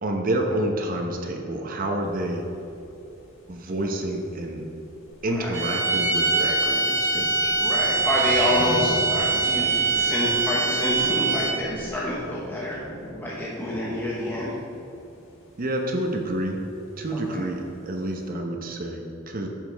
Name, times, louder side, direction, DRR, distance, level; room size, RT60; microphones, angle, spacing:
voice 1, 0.0-2.5 3.5-4.7 5.2-7.6 15.6-16.7 17.0-19.5, right 1 dB, 45° right, 2 dB, 0.9 m, -28 dB
sound 1, 2.0-18.3, equal, 80° left, 1.9 m, -41 dB
voice 2, 5.2-5.6 7.6-12.8 13.2-14.5 17.3-17.5, left 1 dB, 10° left, -6 dB, 1.1 m, -28 dB
sound 2, 5.5-11.8, right 3 dB, 15° right, 1.7 m, -23 dB
11.0 x 7.5 x 3.4 m, 2.8 s
head